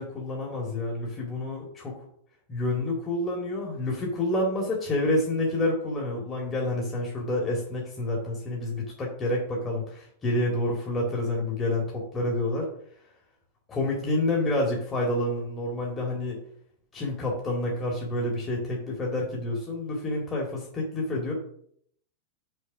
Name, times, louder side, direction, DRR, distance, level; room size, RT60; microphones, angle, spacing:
voice 1, 0.0-2.0 2.5-12.7 13.7-16.4 16.9-21.3, left 1 dB, 20° left, -2 dB, 2.1 m, -28 dB
6.4 x 4.6 x 6.0 m, 0.66 s
figure-of-eight pair, 90°, 0 cm